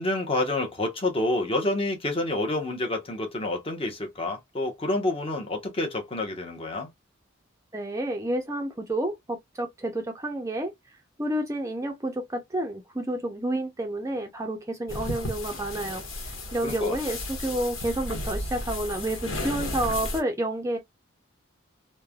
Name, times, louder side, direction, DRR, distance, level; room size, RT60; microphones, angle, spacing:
voice 1, 0.0-6.9 16.6-17.0, left 2 dB, 30° left, 0.8 m, -28 dB
voice 2, 7.7-10.7 11.2-20.8, right 1 dB, 15° right, 0.4 m, -30 dB
sound 1, 14.9-20.2, left 1 dB, 80° left, 1.1 m, -34 dB
3.1 x 2.1 x 2.2 m
head